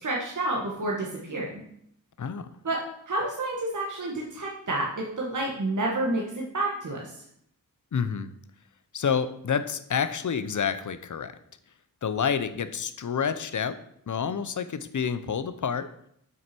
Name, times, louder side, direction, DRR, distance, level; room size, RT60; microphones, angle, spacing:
voice 1, 0.0-1.6 2.6-2.8 3.1-7.2, right 2 dB, 60° right, -2 dB, 1.7 m, -29 dB
voice 2, 2.2-2.5 7.9-8.3 8.9-11.4 12.0-15.9, left 7 dB, 60° left, 12 dB, 0.8 m, -29 dB
7.8 x 5.9 x 6.0 m, 0.70 s
wide cardioid pair, 120°, 34 cm